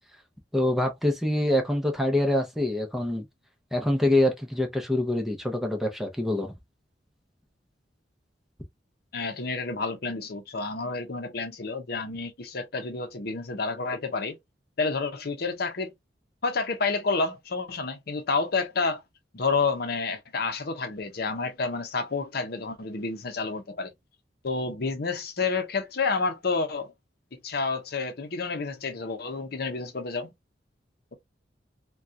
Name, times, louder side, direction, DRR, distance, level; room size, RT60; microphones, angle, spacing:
voice 1, 0.5-3.3 3.7-6.5, left 1 dB, ahead, 0.7 m, -25 dB
voice 2, 9.1-14.4 14.8-15.9 16.4-19.0 19.3-23.9 24.4-26.9 27.3-30.3, left 4 dB, 60° left, 0.7 m, -29 dB
3.7 x 2.3 x 2.7 m
head